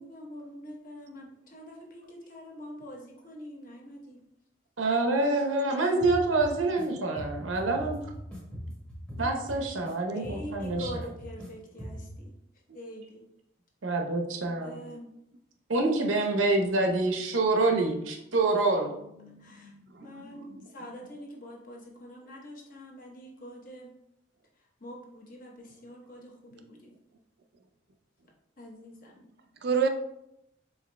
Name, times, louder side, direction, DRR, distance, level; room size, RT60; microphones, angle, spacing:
voice 1, 0.0-4.2 9.2-9.4 10.1-12.3 12.7-13.2 14.6-15.1 19.4-19.7 20.0-23.9 24.8-26.9 28.6-29.2, equal, 45° left, -1 dB, 0.9 m, -44 dB
voice 2, 4.8-8.0 9.2-10.9 13.8-14.7 15.7-18.9, right 2 dB, 90° right, 2 dB, 0.8 m, -26 dB
sound 1, 6.0-6.9 7.2-9.9 10.2-11.5 11.8-12.2, equal, 5° left, 0.9 m, -40 dB
voice 3, 19.2-20.9 29.6-29.9, right 6 dB, 55° right, 6 dB, 0.4 m, -32 dB
4.8 x 3.9 x 2.2 m, 0.82 s
head